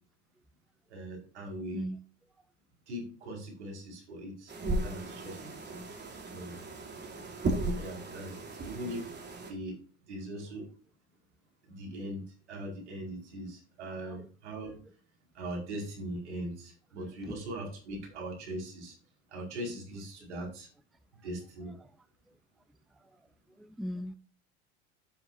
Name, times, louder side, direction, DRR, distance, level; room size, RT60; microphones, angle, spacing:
voice 1, 0.9-1.8 2.9-4.5 4.8-5.4 5.6-5.7 6.3-6.6 7.7-9.1 9.5-9.8 10.1-10.7 11.7-12.2 12.5-14.8 15.3-18.9 19.3-20.7 21.2-21.8, right 1 dB, 85° right, 5.1 m, -40 dB
sound 1, 4.5-9.5, right 2 dB, 30° right, 2.9 m, -36 dB
voice 2, 13.9-14.3 17.0-17.4 20.2-20.3 21.8-21.9 23.0-23.1 23.6-24.1, equal, ahead, 0.4 m, -41 dB
12.0 x 8.4 x 2.7 m
hypercardioid pair, 80°, 34 cm